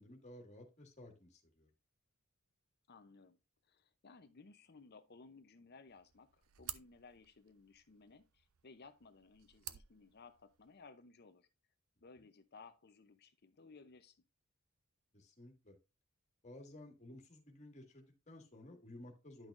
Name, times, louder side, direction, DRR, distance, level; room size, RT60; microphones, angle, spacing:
voice 1, 0.0-1.7 15.1-15.7 16.4-19.5, left 1 dB, 30° left, 1.9 m, -55 dB
voice 2, 2.9-3.4 3.6-11.5 12.0-14.2, left 4 dB, 45° left, 0.7 m, -59 dB
sound 1, 5.9-10.9, right 13 dB, 70° right, 0.5 m, -53 dB
10.5 x 6.0 x 2.5 m
head